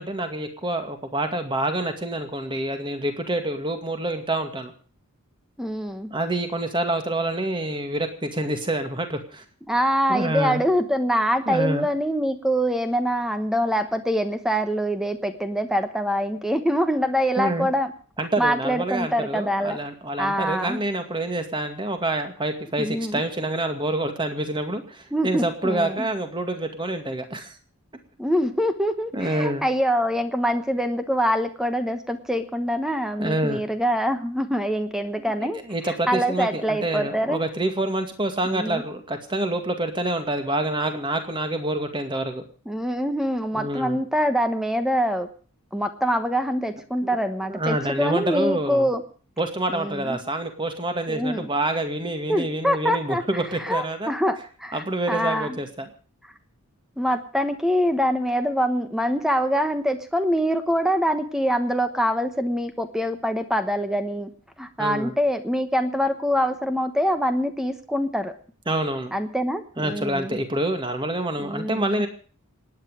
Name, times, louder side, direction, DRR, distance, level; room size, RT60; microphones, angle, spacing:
voice 1, 0.0-4.7 6.1-9.4 10.1-10.7 11.5-11.9 17.4-17.7 18.2-27.6 29.1-29.7 33.2-33.6 35.7-42.4 43.5-44.0 47.5-48.9 49.4-54.1 54.7-55.9 64.8-65.1 68.7-69.1 69.8-72.1, right 1 dB, 20° right, 6 dB, 2.1 m, -27 dB
voice 2, 5.6-6.1 9.7-17.9 18.4-19.8 20.2-20.8 22.8-23.2 25.1-26.1 28.2-35.6 36.1-37.4 38.4-38.8 42.7-45.3 45.7-49.0 49.7-50.2 51.1-51.5 52.3-53.2 53.6-55.6 57.0-64.3 64.6-68.3 69.1-70.4 71.4-72.0, equal, ahead, 8 dB, 1.1 m, -24 dB
27.0 x 9.8 x 5.0 m, 0.42 s
head